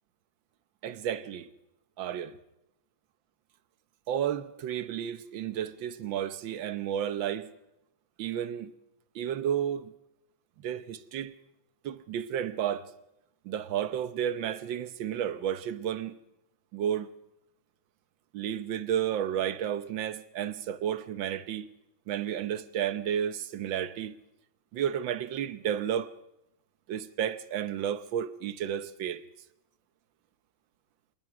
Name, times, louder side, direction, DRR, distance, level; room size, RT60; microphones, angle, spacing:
voice 1, 0.8-1.5 2.0-2.4 4.1-7.5 8.2-8.7 9.1-9.9 10.6-11.3 11.8-12.9 13.4-16.2 16.7-17.1 18.3-21.7 22.1-24.2 24.7-26.1 26.9-29.2, right 9 dB, 75° right, 1.7 m, -32 dB
26.0 x 19.5 x 6.1 m
omnidirectional pair, 2.1 m